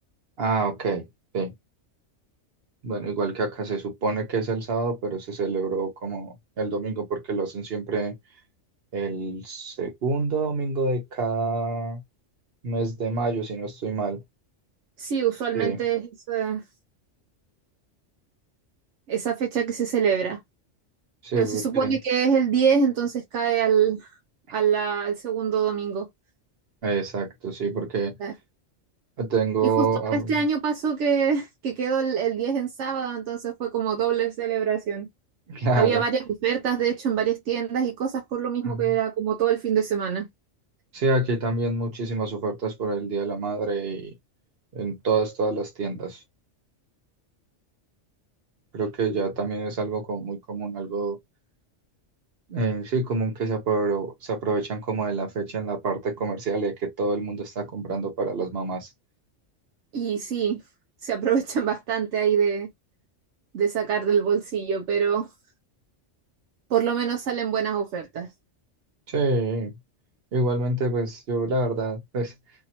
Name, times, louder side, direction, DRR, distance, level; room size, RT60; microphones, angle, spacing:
voice 1, 0.4-1.0 1.3-1.5 2.8-8.1 8.9-12.0 12.6-14.2 15.5-15.8 21.2-21.9 26.8-28.2 29.2-30.3 35.5-36.0 38.6-38.8 40.9-44.1 44.7-46.2 48.7-51.2 52.5-58.9 69.1-69.7 70.3-72.3, right 3 dB, 55° right, 1.2 m, -27 dB
voice 2, 15.0-16.6 19.1-20.4 21.3-24.1 24.5-26.1 28.2-28.3 29.6-29.9 30.1-35.1 35.7-40.3 59.9-60.6 61.0-62.7 63.5-65.3 66.7-68.3, right 7 dB, 75° right, 0.9 m, -25 dB
2.7 x 2.7 x 2.9 m
omnidirectional pair, 1.2 m